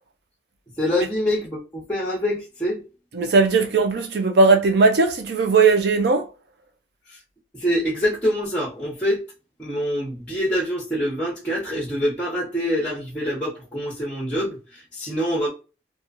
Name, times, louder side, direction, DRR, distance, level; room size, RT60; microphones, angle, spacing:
voice 1, 0.8-2.8 7.5-9.2 9.6-15.5, equal, 10° left, 0.8 m, -25 dB
voice 2, 3.1-6.3, right 4 dB, 65° right, 0.5 m, -18 dB
3.0 x 2.3 x 2.5 m
head